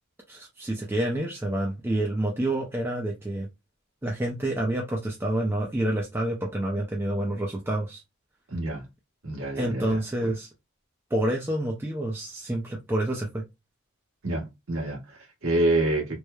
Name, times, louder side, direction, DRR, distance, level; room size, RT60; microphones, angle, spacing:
voice 1, 0.3-3.5 4.0-8.0 9.5-10.5 11.1-13.4, right 1 dB, 10° right, 0.4 m, -28 dB
voice 2, 8.5-8.8 9.2-10.3 14.2-16.2, right 2 dB, 75° right, 1.2 m, -27 dB
3.0 x 2.0 x 2.2 m
head